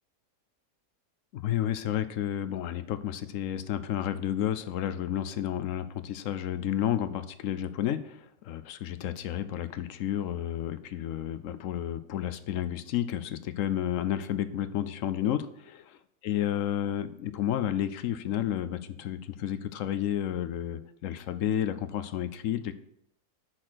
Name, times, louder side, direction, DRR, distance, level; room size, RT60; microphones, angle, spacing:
voice 1, 1.3-22.7, left 11 dB, 65° left, 12 dB, 0.8 m, -31 dB
6.4 x 5.9 x 6.2 m, 0.71 s
omnidirectional pair, 1.7 m